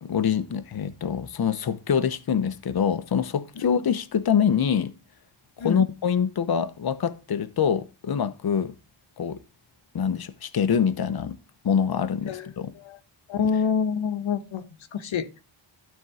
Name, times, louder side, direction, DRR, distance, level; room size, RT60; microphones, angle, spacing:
voice 1, 0.0-4.9 5.6-8.7 9.2-9.4 9.9-11.4 11.6-12.7, left 7 dB, 50° left, 0.9 m, -25 dB
voice 2, 13.3-14.6 14.9-15.4, left 6 dB, 75° left, 1.3 m, -26 dB
12.5 x 4.6 x 4.8 m
wide cardioid pair, 90°, 47 cm